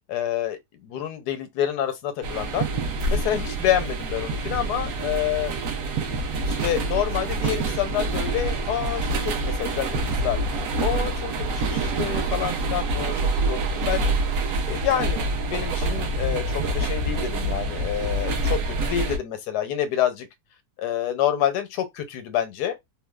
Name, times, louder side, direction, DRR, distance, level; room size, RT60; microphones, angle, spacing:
voice 1, 0.1-2.7 3.1-5.5 6.4-10.4 10.8-14.1 14.6-20.3 20.8-22.8, left 10 dB, 85° left, 1.2 m, -28 dB
sound 1, 2.2-19.2, right 2 dB, 65° right, 0.9 m, -26 dB
3.1 x 2.0 x 2.2 m
omnidirectional pair, 1.7 m